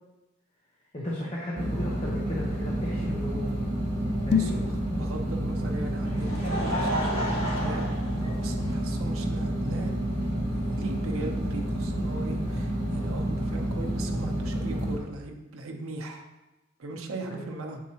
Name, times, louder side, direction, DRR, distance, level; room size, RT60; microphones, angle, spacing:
voice 1, 0.9-3.5 4.2-4.6 17.3-17.5, left 1 dB, 30° left, -4 dB, 0.8 m, -35 dB
sound 1, 1.5-15.0, right 1 dB, 35° right, 1.8 m, -29 dB
sound 2, 4.2-4.7, left 7 dB, 50° left, 0.4 m, -25 dB
voice 2, 4.3-4.7 5.0-7.8 8.1-10.0 10.5-16.2 16.8-17.8, right 2 dB, 85° right, 2 dB, 0.8 m, -38 dB
Laughter, 5.7-9.0 9.8-9.9 11.3-11.4, equal, 70° left, 2.1 m, -32 dB
7.2 x 4.6 x 2.9 m, 1.1 s
head